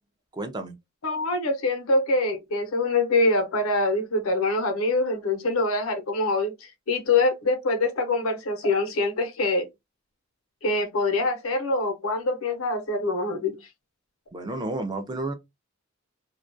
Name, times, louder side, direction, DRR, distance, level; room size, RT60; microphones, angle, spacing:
voice 1, 0.3-0.7 14.3-15.3, right 2 dB, 20° right, 0.4 m, -31 dB
voice 2, 1.0-9.7 10.6-13.6, left 2 dB, 85° left, 0.7 m, -24 dB
2.2 x 2.1 x 2.5 m
head